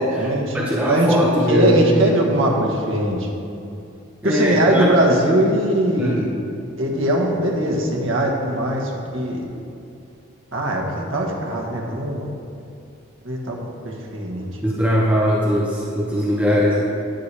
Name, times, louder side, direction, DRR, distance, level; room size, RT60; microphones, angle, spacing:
voice 1, 0.0-0.6 0.9-1.1 1.5-3.3 4.2-6.3 6.8-9.4 10.5-12.3 13.2-14.5, right 1 dB, 65° right, -2 dB, 1.4 m, -21 dB
voice 2, 0.5-2.1 4.2-4.9 6.0-6.3 14.6-16.8, equal, 5° right, -5 dB, 0.8 m, -20 dB
10.5 x 9.7 x 3.3 m, 2.6 s
head